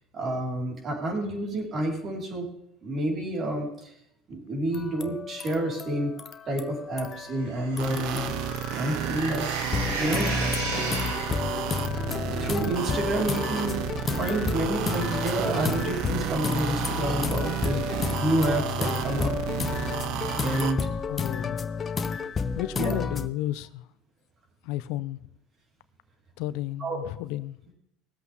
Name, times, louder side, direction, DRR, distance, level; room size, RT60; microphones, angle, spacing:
voice 1, 0.1-2.4 2.8-3.9 4.3-6.1 6.5-8.3 8.8-9.5 10.0-10.3 10.6-10.7 12.3-13.8 14.1-19.3 20.4-20.9 22.8-23.0 26.8-27.0, right 1 dB, 40° right, 5.2 m, -29 dB
sound 1, 4.7-7.5 7.8-9.1 9.3-23.3, left 5 dB, 25° left, 1.1 m, -31 dB
sound 2, 7.4-11.7, right 2 dB, 85° right, 5.1 m, -34 dB
sound 3, 7.8-20.7, right 10 dB, 65° right, 1.0 m, -32 dB
voice 2, 21.1-21.7 22.6-23.9 24.6-25.3 26.4-27.6, left 15 dB, 70° left, 0.7 m, -32 dB
20.5 x 8.1 x 3.8 m
supercardioid pair, 100°, 0 cm